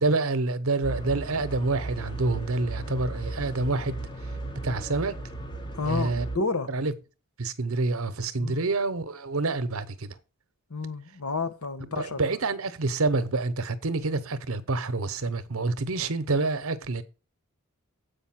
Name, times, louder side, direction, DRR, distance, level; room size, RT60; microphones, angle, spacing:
voice 1, 0.0-4.1 4.6-5.1 5.9-6.2 6.7-6.9 7.4-10.1 12.0-17.0, right 3 dB, 75° right, 0.9 m, -27 dB
sound 1, 0.8-6.4, right 2 dB, 20° left, 0.9 m, -36 dB
voice 2, 5.7-6.7 8.4-8.6 10.7-12.2, left 3 dB, 85° left, 1.2 m, -30 dB
8.1 x 5.3 x 5.9 m
head